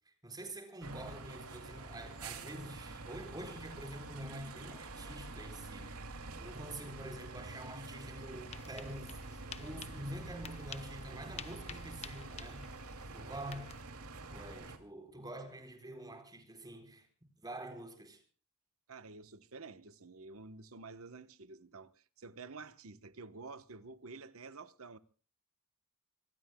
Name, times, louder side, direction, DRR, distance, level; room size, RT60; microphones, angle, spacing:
voice 1, 0.1-12.7 13.1-13.7 14.3-17.1 17.4-18.2, right 1 dB, 20° right, 4.3 m, -47 dB
sound 1, 0.8-14.8, right 3 dB, 85° right, 2.6 m, -47 dB
sound 2, 8.3-13.8, left 6 dB, 30° left, 0.9 m, -51 dB
voice 2, 18.9-25.0, right 4 dB, 65° right, 1.1 m, -50 dB
25.5 x 22.0 x 2.3 m
head